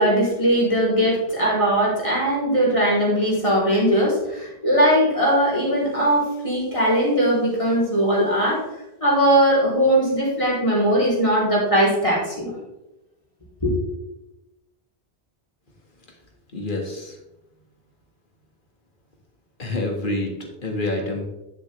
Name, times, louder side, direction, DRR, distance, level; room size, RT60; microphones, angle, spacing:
voice 1, 0.0-8.6 9.0-12.5 13.6-13.7, equal, 30° left, -5 dB, 3.2 m, -20 dB
voice 2, 16.5-17.2 19.6-21.3, left 2 dB, 50° left, 2 dB, 1.8 m, -27 dB
9.9 x 7.6 x 3.2 m, 0.94 s
omnidirectional pair, 1.1 m